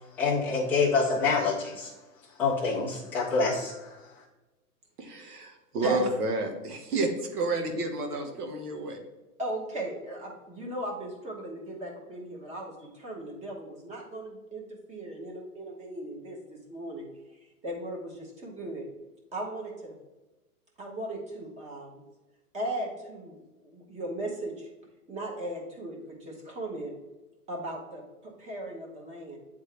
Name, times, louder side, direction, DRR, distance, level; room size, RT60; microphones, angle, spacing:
voice 1, 0.2-1.9 2.4-3.8, left 4 dB, 5° left, -7 dB, 0.5 m, -26 dB
voice 2, 5.0-9.0, right 2 dB, 75° right, 5 dB, 1.5 m, -30 dB
voice 3, 9.4-17.1 17.6-18.9 19.3-19.9 20.8-22.0 22.5-24.7 25.1-26.9 27.5-29.4, right 1 dB, 15° right, -1 dB, 1.1 m, -37 dB
8.7 x 3.6 x 3.3 m, 1.1 s
hypercardioid pair, 145°, 46 cm